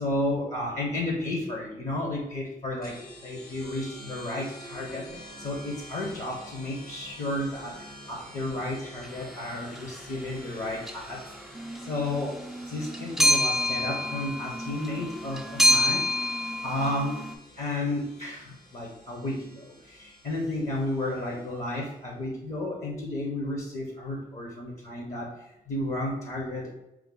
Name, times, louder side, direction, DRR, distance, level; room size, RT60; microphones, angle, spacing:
voice 1, 0.0-11.3 11.8-12.4 12.7-16.3 16.6-17.2 17.6-26.7, left 1 dB, 50° left, 0 dB, 0.8 m, -32 dB
sound 1, 2.8-22.0, left 1 dB, 80° left, 1.4 m, -49 dB
sound 2, 9.6-9.8 10.8-11.3 11.5-17.3, equal, ahead, 0.3 m, -27 dB
4.6 x 2.1 x 3.7 m, 0.89 s
wide cardioid pair, 125°, 15 cm